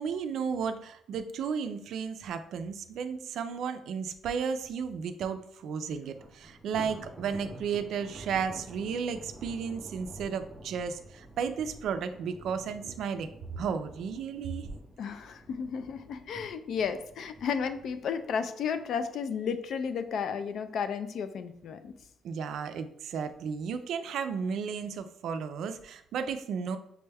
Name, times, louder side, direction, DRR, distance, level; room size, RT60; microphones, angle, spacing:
voice 1, 0.0-14.7 22.2-26.8, right 6 dB, 65° right, 9 dB, 0.4 m, -34 dB
Thunder, 6.1-19.4 19.8-20.1 20.5-20.6 21.5-22.0, equal, 5° right, 0.6 m, -49 dB
voice 2, 15.0-21.9, left 6 dB, 55° left, 10 dB, 0.3 m, -33 dB
6.0 x 2.2 x 3.3 m, 0.73 s
cardioid pair, 165°, 0 cm